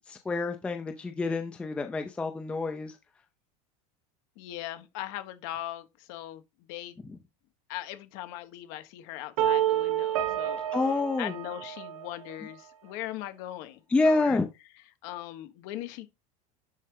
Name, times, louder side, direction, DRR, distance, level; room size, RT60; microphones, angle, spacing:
voice 1, 0.1-3.0 10.7-11.3 13.9-14.5, left 3 dB, 5° left, 0.5 m, -27 dB
voice 2, 4.4-7.0 7.7-10.6 11.2-14.4 15.0-16.1, left 14 dB, 45° left, 1.3 m, -39 dB
sound 1, 9.4-12.3, right 11 dB, 85° right, 2.3 m, -29 dB
11.0 x 4.2 x 3.7 m
supercardioid pair, 180°, 18 cm